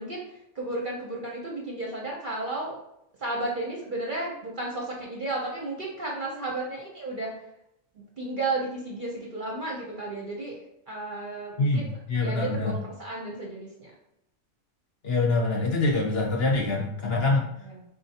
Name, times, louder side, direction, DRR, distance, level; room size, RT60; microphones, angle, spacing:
voice 1, 0.0-2.8 3.2-7.3 7.9-13.9 17.6-17.8, right 2 dB, 45° right, -2 dB, 0.7 m, -33 dB
voice 2, 12.1-12.7 15.0-17.5, left 3 dB, 55° left, -1 dB, 0.9 m, -24 dB
4.3 x 3.8 x 2.8 m, 0.80 s
omnidirectional pair, 1.5 m